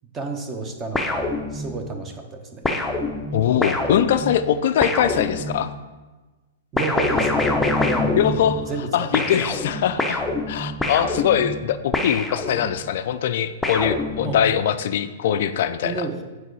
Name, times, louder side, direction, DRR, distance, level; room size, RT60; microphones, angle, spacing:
voice 1, 0.1-2.6 6.7-9.3 14.2-14.4 15.8-16.2, right 3 dB, 25° right, 5 dB, 1.0 m, -31 dB
sound 1, 0.9-1.9 2.6-5.8 6.8-8.9 9.1-12.9 13.6-14.6, left 2 dB, 5° left, 0.6 m, -26 dB
voice 2, 3.3-5.7 8.1-8.6 8.9-10.2 10.5-16.1, left 9 dB, 55° left, 11 dB, 0.3 m, -22 dB
8.2 x 4.6 x 4.7 m, 1.2 s
figure-of-eight pair, 105°, 0 cm